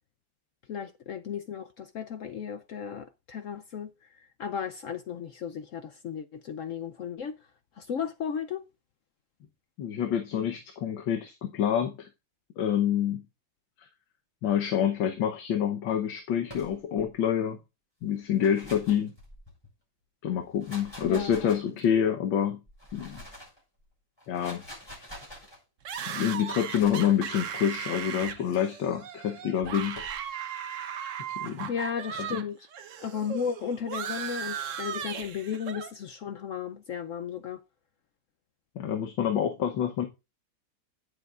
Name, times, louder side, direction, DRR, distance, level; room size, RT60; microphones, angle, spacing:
voice 1, 0.7-3.9 4.4-7.4 7.8-8.6 21.0-21.5 31.7-32.7 33.0-37.6, left 7 dB, 75° left, 0.7 m, -35 dB
voice 2, 9.8-12.1 12.6-13.2 14.4-17.6 18.0-19.1 20.2-22.6 22.9-23.2 24.3-24.6 26.1-30.0 31.4-31.7 32.3-32.4 38.8-40.1, left 9 dB, 90° left, 1.7 m, -27 dB
sound 1, 16.4-17.1 18.2-19.7 20.4-22.0 22.7-23.6 24.2-25.6 26.7-27.2 28.2-28.6 29.6-30.2, left 1 dB, 10° left, 7.0 m, -46 dB
sound 2, 25.8-32.4 32.7-35.9, right 8 dB, 55° right, 1.0 m, -37 dB
17.0 x 7.6 x 2.4 m
omnidirectional pair, 2.0 m